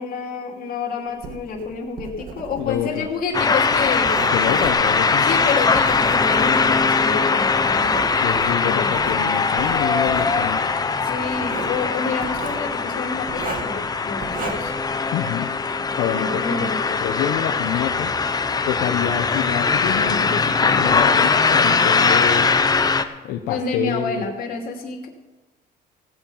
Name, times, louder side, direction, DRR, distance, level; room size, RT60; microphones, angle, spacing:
voice 1, 0.0-4.1 5.2-8.1 8.6-9.0 11.0-14.7 16.2-16.8 23.5-25.1, left 4 dB, 60° left, 2 dB, 2.7 m, -28 dB
Writing, 1.1-6.9 7.4-9.2 9.6-10.3 11.3-11.8 12.2-12.6 13.3-13.8 14.2-14.8, right 4 dB, 55° right, 2.4 m, -34 dB
voice 2, 2.6-3.1 4.3-5.3 8.2-10.6 15.1-15.5 16.0-18.1 18.7-22.6 23.2-24.2, left 10 dB, 85° left, 2 dB, 1.0 m, -27 dB
sound 1, 3.3-23.0, left 4 dB, 25° left, 0.8 m, -20 dB
17.0 x 9.0 x 5.6 m, 1.2 s
cardioid pair, 110°, 17 cm